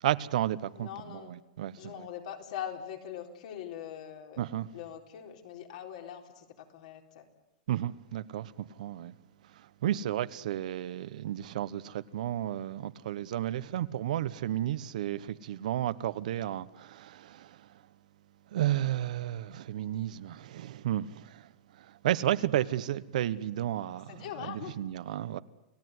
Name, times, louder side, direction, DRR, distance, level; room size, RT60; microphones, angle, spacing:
voice 1, 0.0-2.1 4.4-4.7 7.7-9.1 9.6-17.8 18.5-25.4, right 12 dB, 70° right, 1.1 m, -33 dB
voice 2, 0.8-1.3 1.8-4.5 4.7-7.3 24.1-24.8, left 10 dB, 65° left, 4.0 m, -42 dB
29.5 x 18.0 x 9.6 m
supercardioid pair, 165°, 4 cm